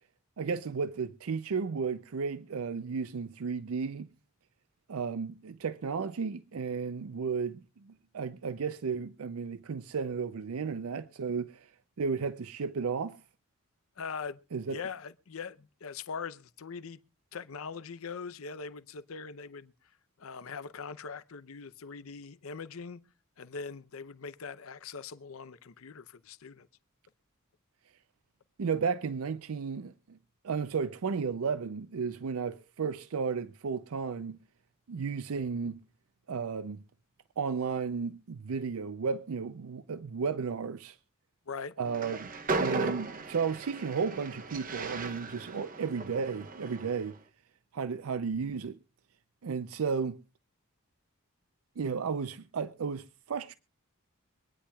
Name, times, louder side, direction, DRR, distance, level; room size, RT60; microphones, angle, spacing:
voice 1, 0.4-4.1 4.9-11.7 12.0-13.2 14.5-14.8 28.6-30.2 30.4-34.4 34.9-35.8 36.3-36.8 37.4-41.0 41.8-42.3 42.6-47.2 47.7-48.8 49.4-50.2 51.8-53.5, right 5 dB, 85° right, 0.5 m, -33 dB
voice 2, 14.0-14.4 14.7-17.0 17.3-19.7 20.2-23.0 23.4-26.7 41.5-41.8, left 5 dB, 75° left, 0.6 m, -41 dB
Train, 41.8-47.1, right 3 dB, 40° right, 0.9 m, -36 dB
24.5 x 9.9 x 2.3 m
head